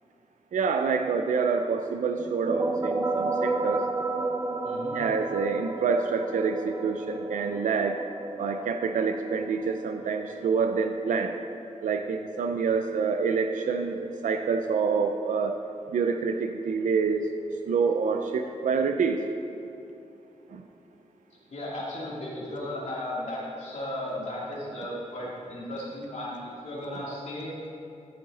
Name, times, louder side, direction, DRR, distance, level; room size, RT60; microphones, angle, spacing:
voice 1, 0.5-3.8 4.9-8.0 8.4-11.4 11.8-15.6 15.9-17.3 17.7-19.3 20.5-20.6, right 5 dB, 90° right, 6 dB, 0.5 m, -27 dB
sound 1, 2.2-11.6, right 3 dB, 25° right, 0.5 m, -33 dB
voice 2, 4.6-5.0 21.5-26.4 26.6-27.5, left 1 dB, 65° left, -7 dB, 2.4 m, -35 dB
13.5 x 6.5 x 4.1 m, 2.8 s
wide cardioid pair, 110°, 13 cm